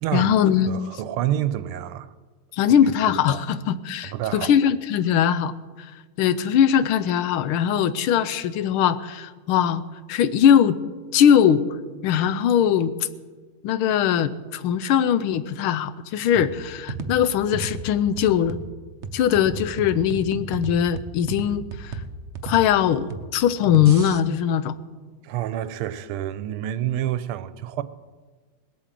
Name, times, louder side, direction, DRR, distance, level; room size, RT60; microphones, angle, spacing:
voice 1, 0.1-0.8 2.5-5.5 5.8-5.9 6.2-9.8 10.1-10.8 11.1-11.6 12.0-12.9 13.6-18.6 19.1-22.0 22.4-24.7, left 9 dB, 80° left, 1.6 m, -20 dB
voice 2, 0.7-2.1 2.7-2.8 3.1-3.4 4.0-4.5 25.2-27.8, right 12 dB, 85° right, 1.5 m, -28 dB
sound 1, 16.3-24.2, right 3 dB, 55° right, 0.8 m, -35 dB
19.5 x 8.6 x 7.5 m
omnidirectional pair, 2.3 m